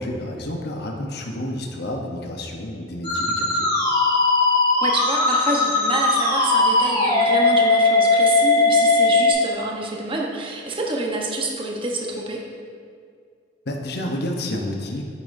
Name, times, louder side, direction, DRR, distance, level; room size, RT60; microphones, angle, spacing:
voice 1, 0.0-3.7 13.7-15.0, left 1 dB, 60° left, 1 dB, 0.9 m, -30 dB
Musical instrument, 3.0-9.3, left 3 dB, 20° left, 1.9 m, -18 dB
voice 2, 4.8-12.4, right 2 dB, 30° right, -1 dB, 1.0 m, -27 dB
9.3 x 8.5 x 2.6 m, 2.2 s
head